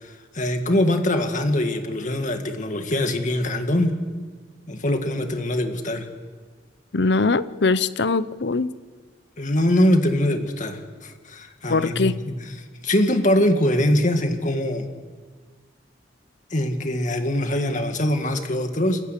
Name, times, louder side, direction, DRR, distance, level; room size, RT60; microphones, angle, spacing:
voice 1, 0.0-4.0 4.7-6.1 9.4-12.3 12.8-14.8 16.5-19.0, left 1 dB, 45° left, 5 dB, 2.2 m, -23 dB
voice 2, 6.9-8.7 11.7-12.2, left 3 dB, 65° left, 15 dB, 0.7 m, -21 dB
28.5 x 14.5 x 8.4 m, 1.5 s
head